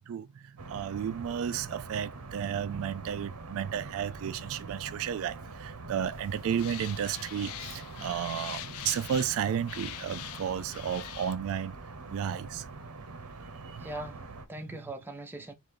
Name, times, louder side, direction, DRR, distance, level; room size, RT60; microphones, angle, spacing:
voice 1, 0.1-11.8 12.1-12.7 13.5-13.9, right 8 dB, 65° right, 0.3 m, -33 dB
sound 1, 0.6-14.5, right 3 dB, 90° right, 0.8 m, -44 dB
sound 2, 6.1-11.4, left 13 dB, 75° left, 0.3 m, -43 dB
voice 2, 13.8-15.5, right 1 dB, 10° right, 0.6 m, -41 dB
3.2 x 2.5 x 3.7 m
head